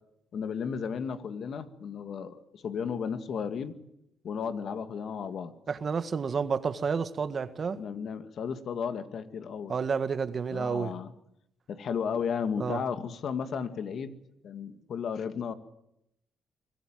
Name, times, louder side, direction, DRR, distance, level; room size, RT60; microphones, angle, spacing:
voice 1, 0.3-3.7 4.2-5.5 7.7-9.7 10.5-11.1 11.7-14.2 14.4-15.5, left 6 dB, 60° left, 2.1 m, -34 dB
voice 2, 5.7-7.8 9.7-10.9 12.6-12.8, right 5 dB, 45° right, 1.6 m, -30 dB
24.5 x 17.0 x 9.2 m
cardioid pair, 90°, 0 cm